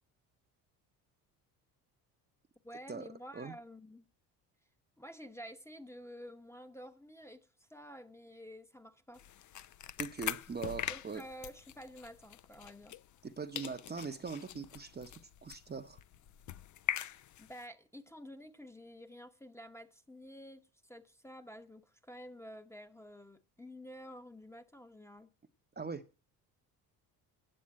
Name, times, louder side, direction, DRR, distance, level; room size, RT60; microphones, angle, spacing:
voice 1, 2.6-4.0 5.0-9.2 10.9-13.0 17.4-25.3, equal, 5° left, 1.0 m, -50 dB
sound 1, 9.1-13.3 13.5-17.6, left 11 dB, 40° left, 0.6 m, -43 dB
voice 2, 10.0-11.2 13.2-16.0 25.8-26.0, right 5 dB, 20° right, 0.9 m, -41 dB
8.9 x 7.2 x 8.8 m
hypercardioid pair, 70°, 46 cm